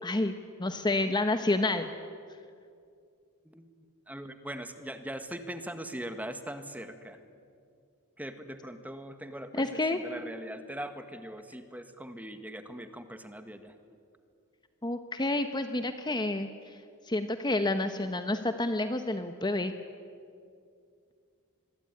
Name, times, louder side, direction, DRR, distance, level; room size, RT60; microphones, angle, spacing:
voice 1, 0.0-1.9 9.5-10.1 14.8-16.8 17.0-19.7, left 2 dB, 20° left, 8 dB, 1.0 m, -29 dB
voice 2, 4.1-7.2 8.2-9.6 9.9-13.7, right 1 dB, 5° right, 8 dB, 1.7 m, -41 dB
26.5 x 22.0 x 9.6 m, 2.4 s
head